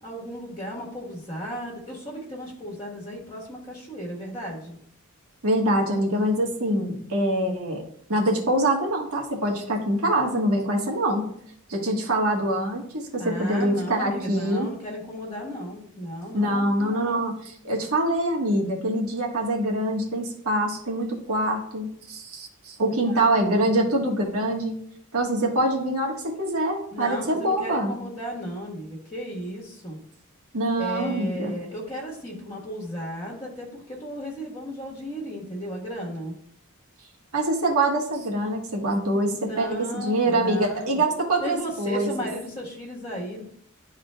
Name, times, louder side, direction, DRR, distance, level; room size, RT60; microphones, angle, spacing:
voice 1, 0.0-4.8 13.2-17.2 23.1-23.3 26.9-30.0 30.8-36.3 39.3-41.0 41.4-43.4, equal, 25° left, -3 dB, 1.3 m, -35 dB
voice 2, 5.4-7.8 8.1-11.2 11.7-14.7 16.3-17.3 17.6-24.7 25.1-26.1 26.4-27.9 30.5-31.5 37.3-42.1, right 1 dB, 80° right, 0 dB, 1.3 m, -24 dB
11.0 x 3.8 x 2.2 m, 0.67 s
head